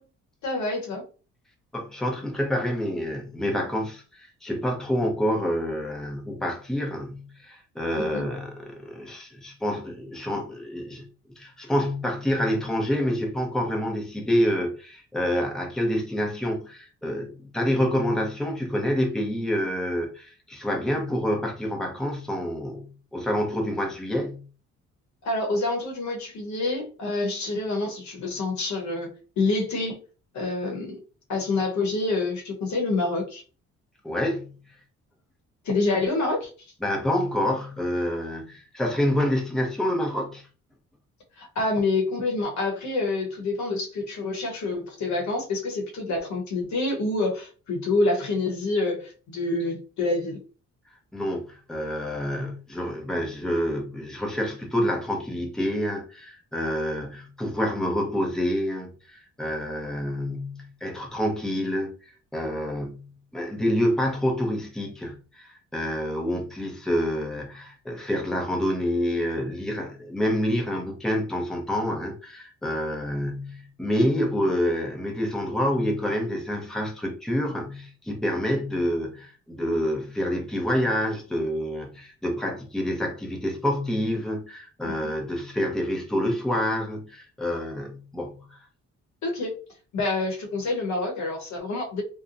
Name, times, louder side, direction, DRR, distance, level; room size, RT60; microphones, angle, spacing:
voice 1, 0.4-1.0 8.0-8.3 25.2-30.0 30.3-31.0 31.3-33.4 35.6-36.5 41.4-50.4 85.0-85.1 89.2-89.6 89.9-92.0, left 2 dB, 70° left, 1.0 m, -27 dB
voice 2, 1.7-11.1 11.4-24.4 34.0-34.5 36.8-40.5 51.1-61.9 62.3-88.6, equal, ahead, 0.8 m, -27 dB
2.8 x 2.2 x 2.5 m
cardioid pair, 90°, 30 cm